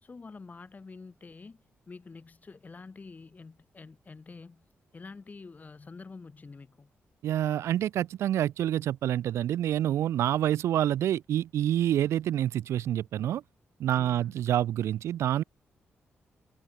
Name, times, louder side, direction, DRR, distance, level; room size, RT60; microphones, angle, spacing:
voice 1, 0.0-4.7 4.9-6.9 13.9-14.4, left 4 dB, 35° left, 3.5 m, -47 dB
voice 2, 7.2-13.4 13.8-15.4, right 11 dB, 85° right, 0.5 m, -27 dB
cardioid pair, 75°, 5 cm